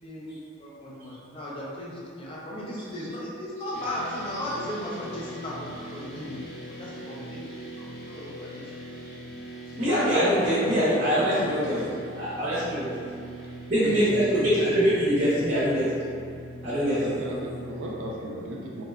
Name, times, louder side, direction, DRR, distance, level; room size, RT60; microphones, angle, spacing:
voice 1, 0.0-6.4 6.7-8.7 9.7-11.1, left 1 dB, 30° left, -5 dB, 0.4 m, -36 dB
sound 1, 3.7-18.1, right 1 dB, 70° left, 1.2 m, -41 dB
voice 2, 9.8-11.8 12.2-12.9 13.7-16.1 16.6-17.0, equal, 40° right, -10 dB, 0.6 m, -23 dB
voice 3, 11.1-12.1 13.1-14.7 16.8-18.8, right 1 dB, 75° right, -2 dB, 0.3 m, -36 dB
2.7 x 2.1 x 2.3 m, 2.3 s
head